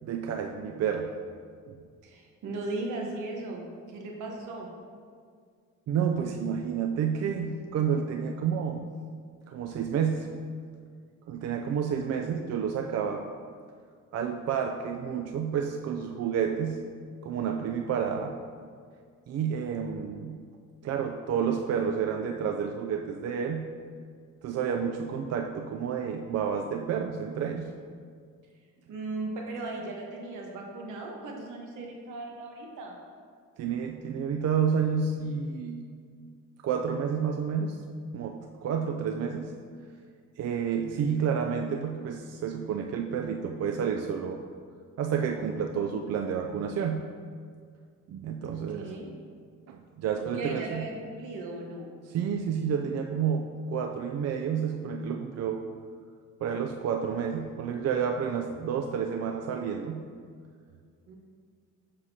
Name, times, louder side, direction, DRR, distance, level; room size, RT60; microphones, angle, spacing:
voice 1, 0.0-1.1 1.7-1.8 5.9-8.9 9.5-10.4 11.3-13.3 14.1-16.8 17.2-18.4 19.3-20.4 20.8-23.7 24.4-27.7 33.6-35.9 36.6-37.8 38.1-39.5 40.4-44.4 45.0-47.1 48.1-49.0 49.7-50.8 52.1-55.6 56.4-60.1, right 7 dB, 55° right, 4 dB, 0.5 m, -30 dB
voice 2, 2.0-4.7 28.9-33.0 48.4-49.1 50.3-51.9 61.1-61.2, right 2 dB, 80° right, 0 dB, 1.3 m, -37 dB
7.2 x 6.4 x 2.8 m, 2.1 s
cardioid pair, 90°, 30 cm